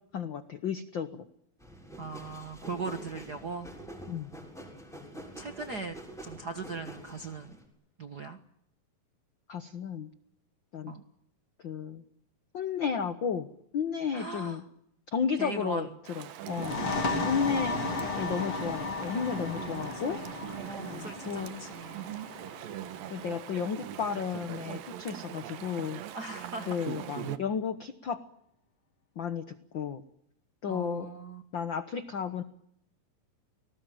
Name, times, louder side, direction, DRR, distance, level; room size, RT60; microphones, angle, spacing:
voice 1, 0.1-1.2 4.1-4.3 9.5-10.1 10.7-10.9 11.6-12.0 12.5-13.5 13.7-14.6 15.1-15.9 16.1-16.8 17.1-17.8 18.2-20.2 20.9-21.6 23.1-26.0 26.7-28.2 29.2-30.0 30.6-31.1 31.5-32.4, left 7 dB, 85° left, 12 dB, 1.0 m, -33 dB
sound 1, 1.6-7.7, equal, ahead, 6.9 m, -47 dB
voice 2, 2.0-3.7 5.4-6.0 6.2-7.6 8.0-8.4 10.9-11.0 14.1-14.6 15.4-15.9 19.9-20.3 20.6-22.1 26.1-26.9 30.7-31.4, right 4 dB, 65° right, 8 dB, 1.0 m, -39 dB
Chatter / Stream, 16.1-27.4, right 11 dB, 80° right, 3.1 m, -41 dB
sound 2, 16.5-23.9, left 3 dB, 40° left, 3.5 m, -35 dB
29.5 x 19.5 x 9.1 m, 0.74 s
omnidirectional pair, 4.0 m